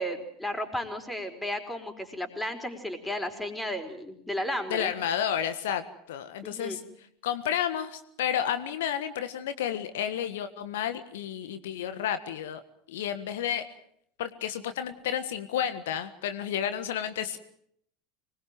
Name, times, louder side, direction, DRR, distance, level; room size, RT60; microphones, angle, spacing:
voice 1, 0.0-4.9 6.4-6.8, equal, 5° left, 7 dB, 4.9 m, -34 dB
voice 2, 4.7-6.8 7.2-12.6 12.9-13.6 14.2-17.4, left 9 dB, 65° left, 10 dB, 1.5 m, -31 dB
25.5 x 21.5 x 7.7 m, 0.69 s
figure-of-eight pair, 75°, 0 cm